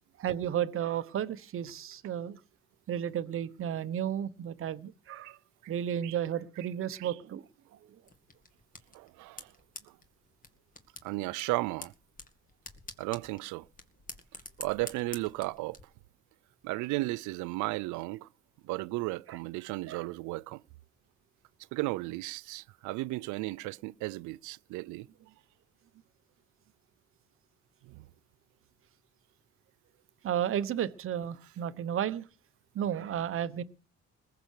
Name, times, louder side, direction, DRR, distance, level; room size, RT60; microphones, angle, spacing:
voice 1, 0.2-2.4 2.9-5.4 5.7-7.4 19.3-19.4 19.9-20.1 30.2-32.2 32.7-33.6, right 10 dB, 45° right, 1.1 m, -33 dB
voice 2, 6.6-7.1 8.9-9.5 9.9-10.0 11.0-11.9 13.0-13.7 14.6-15.8 16.6-18.3 18.6-20.6 21.7-25.1 27.8-28.0, right 21 dB, 90° right, 0.6 m, -35 dB
sound 1, 8.0-15.8, left 3 dB, 30° left, 2.2 m, -49 dB
20.5 x 6.9 x 6.5 m
cardioid pair, 120°, 29 cm